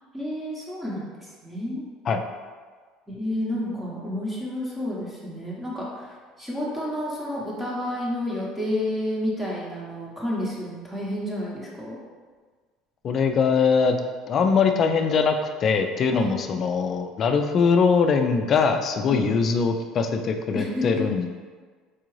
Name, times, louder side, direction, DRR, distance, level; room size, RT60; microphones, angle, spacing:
voice 1, 0.1-1.1 1.4-1.8 3.1-12.0 16.1-16.4 19.1-19.3 20.5-21.0, left 1 dB, 10° right, -5 dB, 0.8 m, -30 dB
voice 2, 13.0-14.0 14.3-15.4 15.6-21.3, left 5 dB, 40° left, 6 dB, 0.3 m, -22 dB
4.6 x 2.5 x 3.1 m, 1.5 s
supercardioid pair, 120°, 0 cm